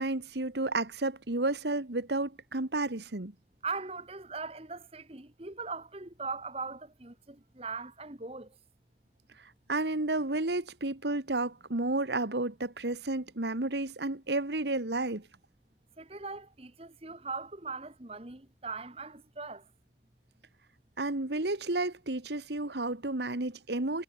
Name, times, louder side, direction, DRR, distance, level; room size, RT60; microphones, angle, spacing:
voice 1, 0.0-3.3 9.7-15.2 21.0-24.0, right 2 dB, 75° right, 1.8 m, -31 dB
voice 2, 3.6-8.6 16.0-19.7, right 4 dB, 35° right, 1.7 m, -40 dB
head